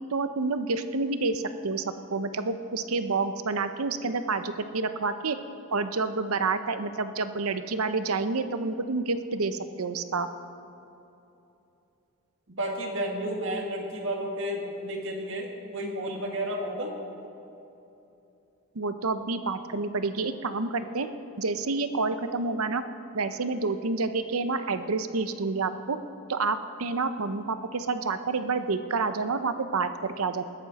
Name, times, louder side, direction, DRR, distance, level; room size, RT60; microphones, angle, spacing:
voice 1, 0.0-5.4 5.7-10.3 18.7-21.1 21.4-22.8 23.1-26.0 26.3-30.4, right 3 dB, 80° right, 10 dB, 0.7 m, -29 dB
voice 2, 12.5-16.9, right 1 dB, 60° right, 1 dB, 1.9 m, -32 dB
20.0 x 12.5 x 4.2 m, 2.9 s
head